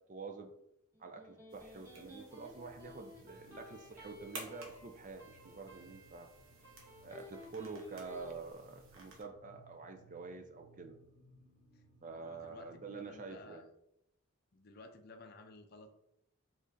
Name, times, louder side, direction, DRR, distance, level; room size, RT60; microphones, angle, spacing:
voice 1, 0.1-0.5 1.0-6.3 7.0-10.9 12.0-13.6, right 4 dB, 35° right, 5 dB, 0.4 m, -47 dB
Electric guitar, 0.9-8.3, left 1 dB, 15° right, 1.5 m, -55 dB
sound 1, 1.5-9.2, right 3 dB, 70° right, 1.0 m, -55 dB
sound 2, 2.4-13.4, right 2 dB, 55° right, 1.5 m, -65 dB
voice 2, 12.1-13.7 14.5-16.0, left 2 dB, 45° left, 5 dB, 0.5 m, -54 dB
5.2 x 3.7 x 2.6 m, 0.83 s
head